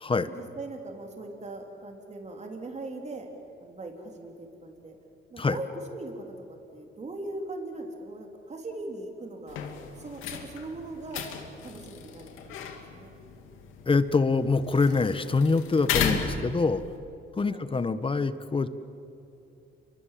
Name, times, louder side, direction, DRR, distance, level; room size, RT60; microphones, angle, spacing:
voice 1, 0.3-3.3 3.6-5.0 5.3-9.6 10.0-11.3 11.6-13.1 17.4-17.7, right 2 dB, 35° right, 2 dB, 3.8 m, -40 dB
sound 1, 9.5-17.0, left 7 dB, 90° left, 2.6 m, -35 dB
voice 2, 13.8-16.8 17.3-18.7, left 4 dB, 25° left, 12 dB, 1.3 m, -25 dB
29.5 x 24.5 x 7.7 m, 2.8 s
cardioid pair, 90°, 20 cm